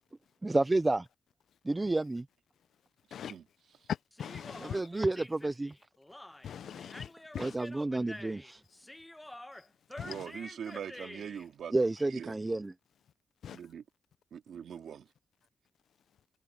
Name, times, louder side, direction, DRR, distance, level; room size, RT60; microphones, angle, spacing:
voice 1, 0.4-1.1 1.7-2.2 4.7-5.7 7.4-8.6 11.7-12.7, right 2 dB, 20° right, 0.5 m, -30 dB
voice 2, 3.9-4.9 6.4-7.7 10.0-10.3 13.4-13.6, left 9 dB, 80° left, 0.6 m, -41 dB
Human voice, 4.1-11.5, left 1 dB, 10° left, 1.1 m, -48 dB
voice 3, 10.0-11.7 12.1-12.4 13.5-13.8 14.3-15.0, right 8 dB, 75° right, 2.4 m, -42 dB
cardioid pair, 95°, 0 cm